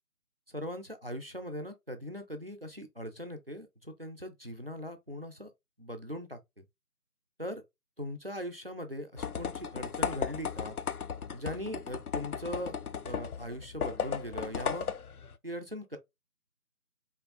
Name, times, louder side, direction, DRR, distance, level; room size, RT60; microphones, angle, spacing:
voice 1, 0.5-5.5 5.8-6.6 7.4-7.6 8.0-10.8 11.3-12.7 13.0-14.9 15.4-16.0, equal, 40° right, 0.6 m, -40 dB
sound 1, 9.2-15.4, left 7 dB, 70° left, 0.5 m, -36 dB
4.0 x 3.4 x 2.2 m
figure-of-eight pair, 165°, 46 cm